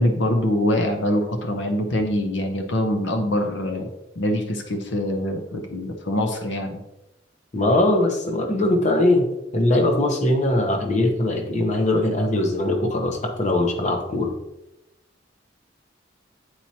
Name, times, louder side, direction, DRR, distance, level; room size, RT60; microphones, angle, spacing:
voice 1, 0.0-3.9 4.2-6.8, left 1 dB, 65° left, 4 dB, 0.7 m, -24 dB
voice 2, 7.5-9.3 9.5-14.3, left 1 dB, 35° left, 3 dB, 0.8 m, -21 dB
8.8 x 4.4 x 2.8 m, 0.91 s
head